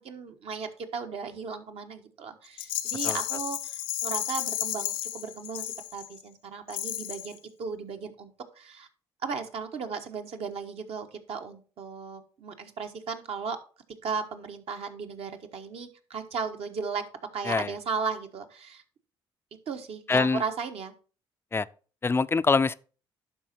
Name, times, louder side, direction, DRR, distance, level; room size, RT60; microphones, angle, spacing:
voice 1, 0.0-8.9 9.2-13.6 14.0-17.0 17.3-18.8 19.7-20.9, right 5 dB, 60° right, 1.2 m, -36 dB
Rattle, 2.6-6.2 6.7-7.4, left 13 dB, 85° left, 0.5 m, -33 dB
voice 2, 20.1-20.4 21.5-21.7 22.0-22.8, left 4 dB, 20° left, 0.4 m, -24 dB
11.5 x 4.4 x 4.3 m
hypercardioid pair, 50°, 12 cm